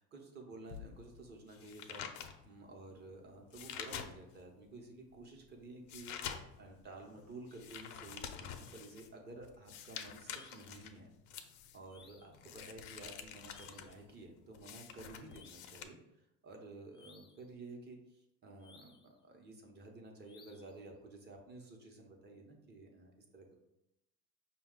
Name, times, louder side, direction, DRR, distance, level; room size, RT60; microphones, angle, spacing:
voice 1, 0.0-11.1 11.3-16.0 16.4-23.6, right 2 dB, 35° right, 2 dB, 0.8 m, -52 dB
sound 1, 0.7-4.5 5.0-15.8, left 8 dB, 90° left, 0.6 m, -48 dB
sound 2, 10.3-10.8 11.9-12.4 13.5-14.0 15.3-15.8 16.9-17.5 18.6-19.2 20.2-20.8, left 4 dB, 15° left, 0.4 m, -62 dB
5.5 x 2.3 x 3.6 m, 0.84 s
cardioid pair, 140°, 31 cm